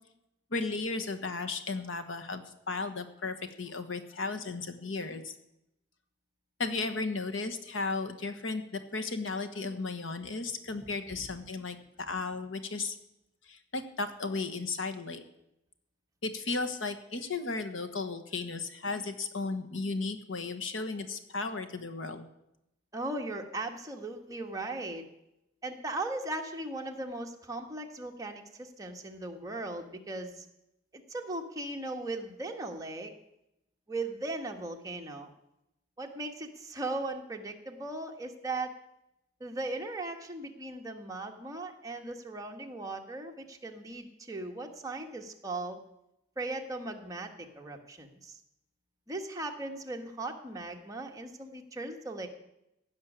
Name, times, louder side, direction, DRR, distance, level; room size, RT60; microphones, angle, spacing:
voice 1, 0.5-5.3 6.6-13.0 13.5-15.2 16.2-22.3, left 3 dB, 80° left, 8 dB, 1.3 m, -35 dB
voice 2, 10.7-11.2 22.9-25.0 25.6-30.4 30.9-33.1 33.9-35.3 36.0-38.7 39.4-45.8 46.4-48.4 49.1-52.3, right 2 dB, 20° right, 2 dB, 1.4 m, -38 dB
16.0 x 6.4 x 9.9 m, 0.85 s
head